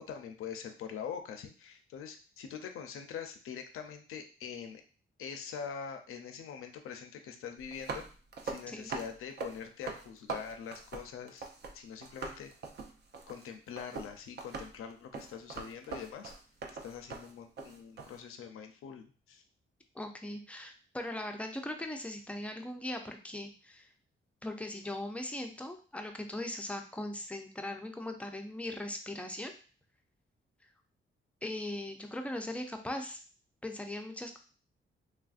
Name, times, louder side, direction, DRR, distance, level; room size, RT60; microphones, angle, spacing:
voice 1, 0.0-4.8 5.2-8.0 8.4-11.5 11.7-12.5 13.3-16.3 16.8-19.4, left 7 dB, 90° left, 5 dB, 0.5 m, -44 dB
sound 1, 7.6-11.7 12.0-18.2, right 4 dB, 55° right, 0.5 m, -42 dB
voice 2, 19.9-23.9 24.4-29.5 31.4-33.2 33.6-34.4, left 1 dB, 5° left, 4 dB, 0.4 m, -39 dB
3.2 x 2.5 x 2.4 m, 0.38 s
wide cardioid pair, 130°, 21 cm